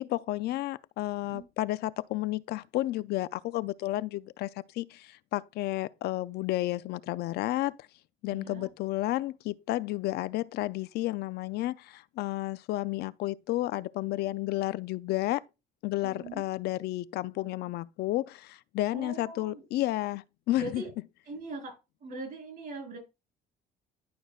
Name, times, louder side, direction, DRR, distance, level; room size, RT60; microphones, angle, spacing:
voice 1, 0.0-4.5 4.7-7.8 8.2-15.4 15.8-20.8, left 16 dB, 70° left, 0.4 m, -32 dB
voice 2, 8.3-8.7 16.0-16.4 18.9-19.6 20.6-20.9 21.3-23.0, right 2 dB, 55° right, 4.0 m, -41 dB
11.0 x 5.0 x 2.4 m
cardioid pair, 110°, 17 cm